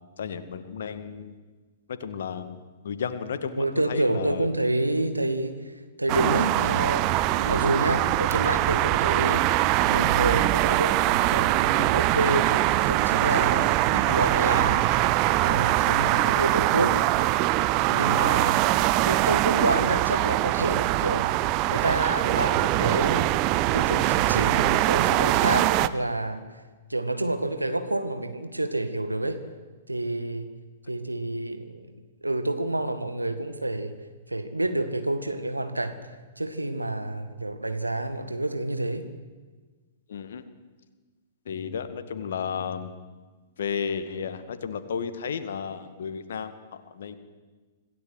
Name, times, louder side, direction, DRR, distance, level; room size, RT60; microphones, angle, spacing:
voice 1, 0.2-1.4 1.9-4.5 13.6-13.7 18.0-18.3 40.1-40.4 41.5-42.9 43.6-47.2, left 6 dB, 55° left, 10 dB, 1.9 m, -33 dB
voice 2, 3.6-5.7 6.0-12.6 12.9-14.9 15.4-17.0 17.8-18.6 19.0-23.3 23.7-26.4 26.9-29.4 29.9-30.5 30.9-31.9 32.2-33.9 34.3-36.0 36.4-39.1, right 1 dB, 85° right, 8 dB, 1.9 m, -28 dB
sound 1, 6.1-25.9, right 16 dB, 35° right, 0.7 m, -23 dB
26.5 x 16.5 x 8.1 m, 1.4 s
figure-of-eight pair, 110°, 0 cm